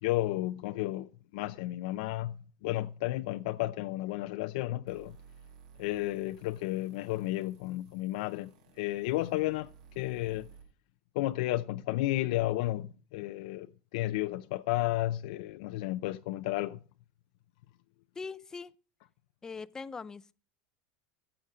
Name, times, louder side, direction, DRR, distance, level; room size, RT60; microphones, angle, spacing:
voice 1, 0.0-5.2 5.8-8.5 8.8-9.7 10.0-10.5 11.1-16.8, left 16 dB, 80° left, 0.6 m, -32 dB
sound 1, 4.9-10.6, right 7 dB, 90° right, 5.6 m, -57 dB
voice 2, 18.2-18.7 19.4-20.3, left 4 dB, 15° left, 0.5 m, -41 dB
14.5 x 8.0 x 5.0 m
cardioid pair, 155°, 4 cm